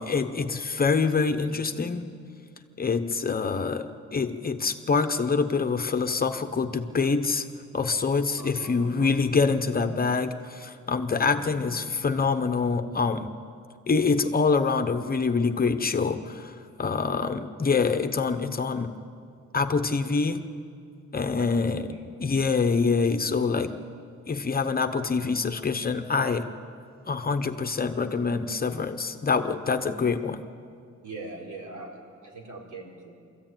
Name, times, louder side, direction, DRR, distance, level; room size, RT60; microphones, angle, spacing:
voice 1, 0.0-2.1 2.8-7.5 7.7-13.3 13.9-18.9 19.5-20.5 21.1-21.9 22.2-23.9 24.3-26.5 27.1-30.4, left 4 dB, 30° left, 8 dB, 0.8 m, -25 dB
voice 2, 8.4-9.2 11.2-11.7 21.4-22.0 31.0-32.0 32.2-33.2, right 2 dB, 75° right, 0 dB, 4.3 m, -42 dB
25.5 x 14.0 x 9.0 m, 2.3 s
wide cardioid pair, 180°, 30 cm